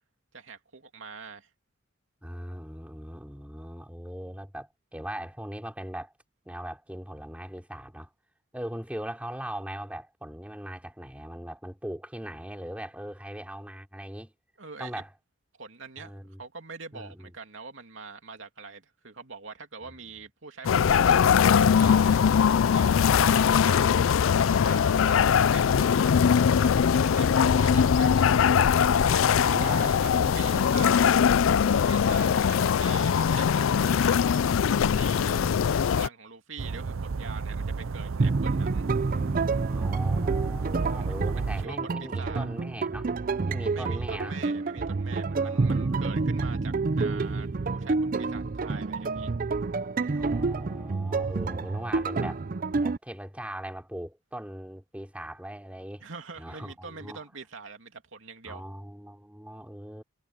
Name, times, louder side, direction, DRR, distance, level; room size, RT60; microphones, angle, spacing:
voice 1, 0.3-1.5 14.6-15.0 15.6-21.2 21.5-22.2 22.7-22.9 23.2-26.0 26.6-28.4 28.9-31.2 31.6-34.4 34.9-35.4 35.9-38.9 41.0-42.4 43.7-49.3 56.0-58.6, right 4 dB, 70° right, 2.8 m, -44 dB
voice 2, 2.2-6.1 6.5-8.1 8.5-14.3 14.8-15.1 16.0-16.4 16.9-17.3 19.8-19.9 23.1-23.5 26.0-26.2 29.4-30.7 32.0-32.7 34.9-35.6 39.7-43.1 43.4-44.4 45.4-46.1 50.1-52.4 52.8-56.0 56.4-57.2 58.5-60.0, right 1 dB, 5° right, 3.5 m, -40 dB
sound 1, 20.6-36.1, left 7 dB, 80° left, 0.4 m, -21 dB
sound 2, 36.6-41.7, right 4 dB, 90° right, 0.6 m, -32 dB
sound 3, 38.2-53.0, right 3 dB, 45° right, 0.5 m, -28 dB
head